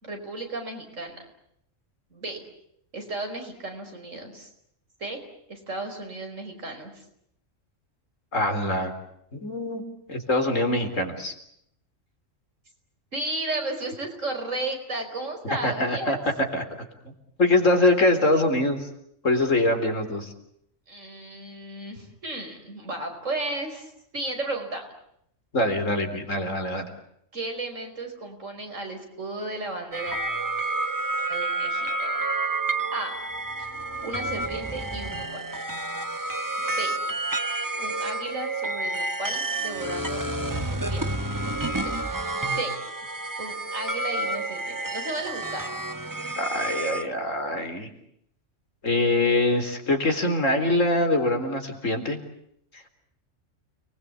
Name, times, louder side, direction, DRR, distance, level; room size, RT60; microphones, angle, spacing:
voice 1, 0.0-1.2 2.1-2.4 2.9-4.5 5.0-5.2 5.5-7.0 13.1-16.2 20.9-24.9 27.3-30.2 31.3-32.2 32.9-33.2 33.6-33.7 34.0-35.4 36.6-37.0 37.8-41.1 41.7-42.7 43.4-45.6, right 2 dB, 80° right, 4 dB, 5.6 m, -34 dB
voice 2, 8.3-8.9 9.3-9.8 10.1-11.3 15.6-16.6 17.0-17.1 17.4-18.9 19.2-20.3 25.5-26.9 46.4-47.9 48.8-52.2, left 2 dB, 90° left, 6 dB, 4.2 m, -23 dB
sound 1, 29.9-47.1, right 2 dB, 15° right, 1.3 m, -29 dB
30.0 x 21.0 x 8.5 m, 0.74 s
omnidirectional pair, 1.3 m